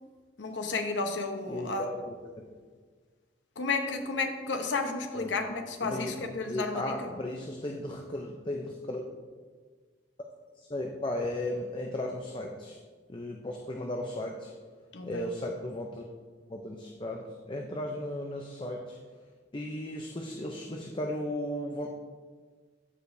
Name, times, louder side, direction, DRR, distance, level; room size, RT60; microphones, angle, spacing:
voice 1, 0.4-1.8 3.6-7.1 14.9-15.2, left 3 dB, 85° left, 5 dB, 0.9 m, -32 dB
voice 2, 1.5-2.4 5.1-5.5 5.8-9.2 10.6-12.8 13.1-14.5 15.0-16.1 16.5-19.0 19.5-21.9, left 1 dB, 25° left, 1 dB, 0.5 m, -36 dB
14.5 x 5.0 x 2.6 m, 1.5 s
head